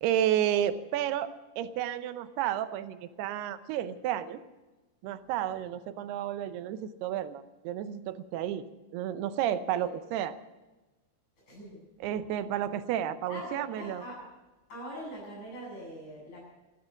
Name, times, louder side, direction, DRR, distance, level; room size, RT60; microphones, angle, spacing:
voice 1, 0.0-4.4 5.0-8.6 8.9-10.3 12.0-14.0, right 11 dB, 90° right, 12 dB, 2.9 m, -31 dB
voice 2, 5.2-5.6 8.1-8.2 9.7-9.9 11.5-11.8 13.3-14.2 14.7-16.4, equal, 45° left, -3 dB, 9.5 m, -43 dB
14.5 x 13.5 x 7.1 m, 1.1 s
omnidirectional pair, 4.5 m